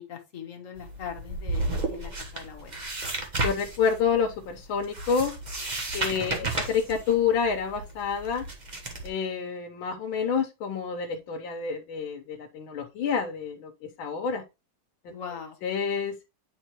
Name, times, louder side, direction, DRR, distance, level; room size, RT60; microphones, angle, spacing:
voice 1, 0.0-2.8 6.0-6.5 15.1-15.6, left 7 dB, 50° left, 4 dB, 1.2 m, -41 dB
sound 1, 0.8-9.1, right 2 dB, 30° right, 0.9 m, -33 dB
voice 2, 3.4-5.3 5.9-8.5 9.0-14.4 15.0-15.1 15.6-16.1, left 6 dB, 85° left, 3 dB, 1.7 m, -28 dB
9.1 x 4.1 x 3.0 m, 0.25 s
omnidirectional pair, 2.1 m